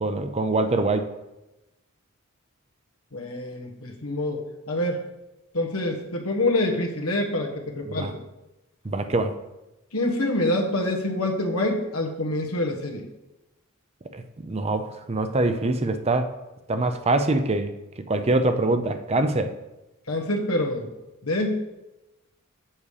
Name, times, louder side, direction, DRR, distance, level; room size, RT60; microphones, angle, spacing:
voice 1, 0.0-1.1 7.9-8.1 8.8-9.3 14.1-16.3 16.7-17.7 18.1-19.5, right 2 dB, 30° right, 8 dB, 0.6 m, -24 dB
voice 2, 3.1-5.0 5.5-8.1 9.9-13.1 20.1-20.9 21.2-21.6, left 1 dB, 85° left, 2 dB, 1.3 m, -26 dB
7.3 x 7.0 x 4.9 m, 0.97 s
head